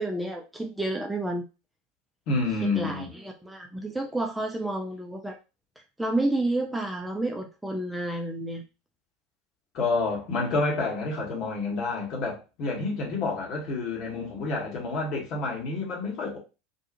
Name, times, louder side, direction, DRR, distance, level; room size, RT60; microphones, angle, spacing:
voice 1, 0.0-1.4 2.6-5.4 6.0-8.6, right 2 dB, 5° right, 0.4 m, -30 dB
voice 2, 2.3-3.1 9.7-16.4, left 3 dB, 45° left, 1.2 m, -29 dB
2.6 x 2.4 x 2.5 m
figure-of-eight pair, 80°, 0 cm